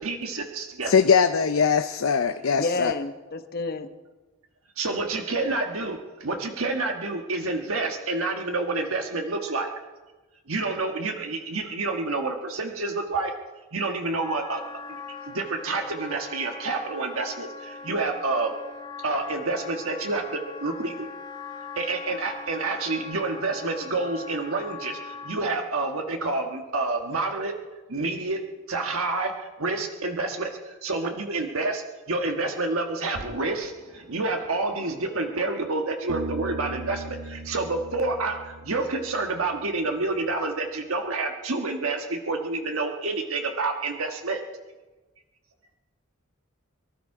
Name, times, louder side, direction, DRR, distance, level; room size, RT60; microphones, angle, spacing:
voice 1, 0.0-0.9 4.8-9.7 10.5-13.3 13.7-14.6 15.3-18.5 19.0-20.2 20.6-20.9 21.8-25.0 25.2-27.5 27.9-28.4 28.7-30.5 30.8-44.4, right 3 dB, 80° right, 3 dB, 1.4 m, -28 dB
voice 2, 0.9-2.9, left 6 dB, 80° left, 8 dB, 0.6 m, -21 dB
voice 3, 2.5-3.9, left 3 dB, 50° left, 9 dB, 1.0 m, -30 dB
Wind instrument woodwind instrument, 14.2-25.5, left 4 dB, 25° left, 1.3 m, -40 dB
Bass guitar, 36.1-39.6, right 2 dB, 60° right, 1.4 m, -37 dB
23.0 x 12.5 x 4.9 m, 1.2 s
head